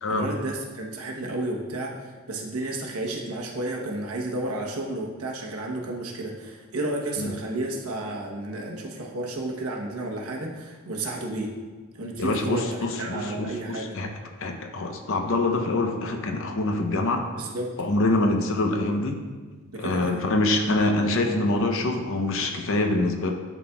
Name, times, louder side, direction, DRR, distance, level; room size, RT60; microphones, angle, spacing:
voice 1, 0.1-2.0 2.3-11.5 11.9-12.6 13.0-14.0 17.4-17.7 19.7-20.2, right 2 dB, 85° right, -1 dB, 1.0 m, -32 dB
voice 2, 12.2-14.1 14.4-17.2 17.8-19.2 19.8-23.3, left 2 dB, 65° left, 4 dB, 0.7 m, -25 dB
11.0 x 4.1 x 2.3 m, 1.4 s
head